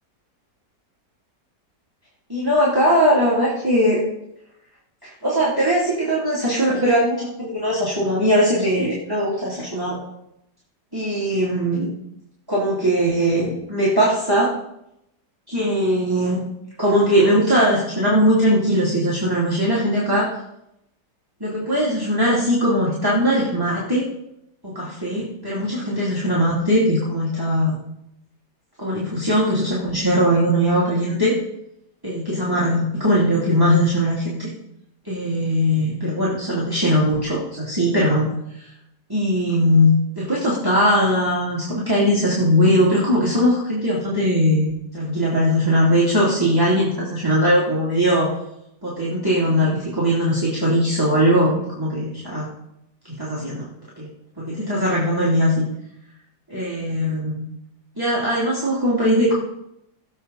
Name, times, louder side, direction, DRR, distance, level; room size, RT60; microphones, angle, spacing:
voice 1, 2.3-4.0 5.0-10.0 10.9-11.9 12.5-14.5 15.5-16.4 16.8-20.3 21.4-24.0 24.6-27.8 28.8-31.3 32.0-34.5 35.0-38.3 39.1-48.3 48.8-52.5 53.0-53.6 54.0-54.1 54.4-55.6 56.5-57.4 58.0-59.3, equal, 10° right, -8 dB, 3.0 m, -20 dB
22.0 x 7.8 x 4.2 m, 0.82 s
omnidirectional pair, 1.8 m